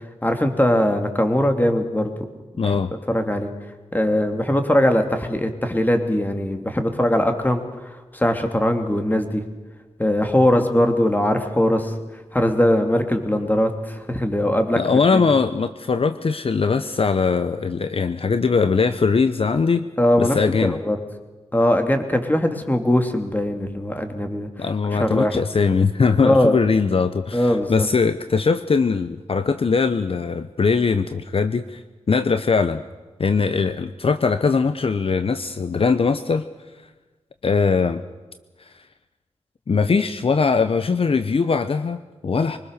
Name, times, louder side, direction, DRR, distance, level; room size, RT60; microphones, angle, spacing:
voice 1, 0.2-2.1 2.5-2.8 3.1-3.5 3.9-9.4 10.0-11.9 12.3-14.8 15.1-15.3 20.0-21.0 21.5-24.5 24.9-25.4 26.2-26.6 27.3-27.9, left 1 dB, 15° left, 6 dB, 2.7 m, -20 dB
voice 2, 2.6-2.9 14.8-19.9 20.2-20.8 24.6-31.8 32.1-32.8 33.2-36.4 37.4-38.0 38.7-38.8 39.7-42.6, left 5 dB, 55° left, 11 dB, 0.8 m, -21 dB
24.0 x 20.0 x 6.7 m, 1.2 s
cardioid pair, 60°, 12 cm